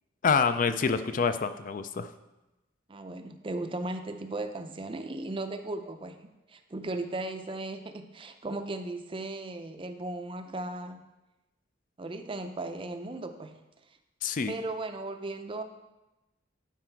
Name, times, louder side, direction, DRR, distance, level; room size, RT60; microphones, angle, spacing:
voice 1, 0.2-2.1 14.2-14.5, left 5 dB, 40° left, 11 dB, 0.4 m, -26 dB
voice 2, 2.9-11.0 12.0-13.6 14.5-15.6, right 2 dB, 25° right, 8 dB, 0.5 m, -36 dB
11.5 x 4.9 x 4.5 m, 1.0 s
head